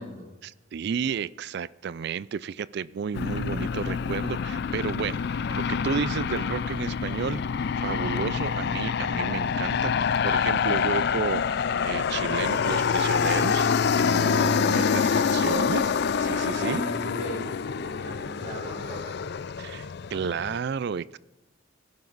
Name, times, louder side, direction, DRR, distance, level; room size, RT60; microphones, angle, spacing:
voice 1, 0.4-7.4 7.8-15.9 16.2-16.8 19.6-21.2, right 6 dB, 50° right, 0.3 m, -32 dB
Aircraft, 3.1-20.6, left 6 dB, 50° left, 0.4 m, -26 dB
voice 2, 14.1-15.7 16.5-19.2, equal, 35° right, 4.1 m, -37 dB
17.5 x 10.5 x 4.0 m
head